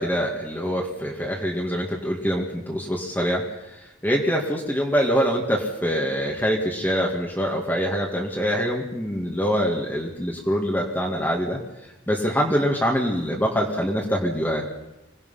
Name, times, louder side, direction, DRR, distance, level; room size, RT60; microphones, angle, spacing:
voice 1, 0.0-11.6 12.1-14.6, equal, 10° left, -1 dB, 2.2 m, -24 dB
25.5 x 18.5 x 5.8 m, 0.99 s
head